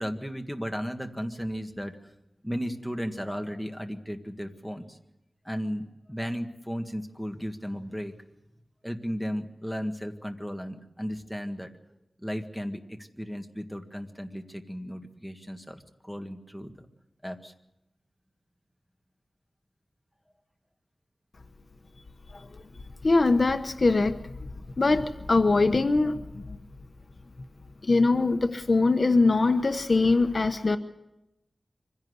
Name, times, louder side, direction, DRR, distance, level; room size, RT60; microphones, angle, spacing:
voice 1, 0.0-2.0 2.4-5.0 5.4-8.1 8.8-11.7 12.2-16.9 17.2-17.5, equal, ahead, 5 dB, 1.7 m, -35 dB
voice 2, 23.0-24.5 24.8-26.6 27.8-30.8, left 3 dB, 50° left, 8 dB, 1.0 m, -23 dB
25.0 x 16.5 x 8.0 m, 0.89 s
wide cardioid pair, 105°, 0 cm